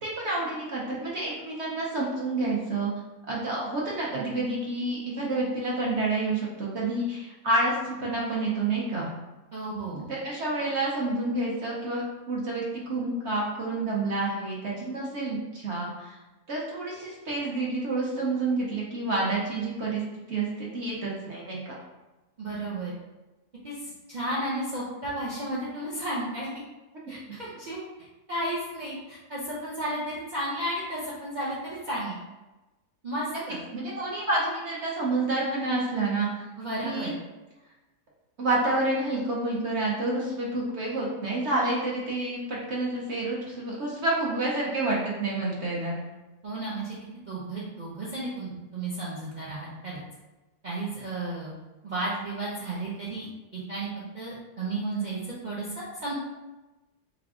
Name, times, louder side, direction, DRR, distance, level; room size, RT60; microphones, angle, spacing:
voice 1, 0.0-2.9 3.3-9.1 10.1-16.2 16.5-20.0 20.3-21.8 33.7-36.4 36.8-37.1 38.4-46.0, right 2 dB, 55° right, -4 dB, 0.9 m, -29 dB
voice 2, 9.5-10.1 22.4-23.0 23.6-26.5 27.1-27.8 28.3-32.2 33.0-33.6 36.6-37.2 46.4-50.0 50.6-51.5 51.8-53.3 53.5-53.9 54.1-56.1, right 1 dB, 75° right, -7 dB, 0.4 m, -33 dB
3.5 x 2.3 x 3.6 m, 1.1 s
omnidirectional pair, 1.7 m